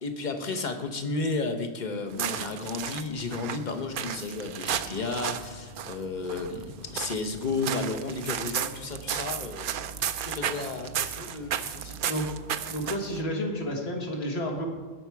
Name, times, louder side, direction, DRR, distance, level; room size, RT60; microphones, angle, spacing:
voice 1, 0.0-9.8 10.2-11.9, left 3 dB, 45° left, 6 dB, 1.1 m, -33 dB
sound 1, 2.1-13.2, right 8 dB, 60° right, 0.7 m, -34 dB
voice 2, 12.7-14.7, equal, 65° left, 1 dB, 1.9 m, -31 dB
17.5 x 5.8 x 4.7 m, 1.4 s
omnidirectional pair, 1.1 m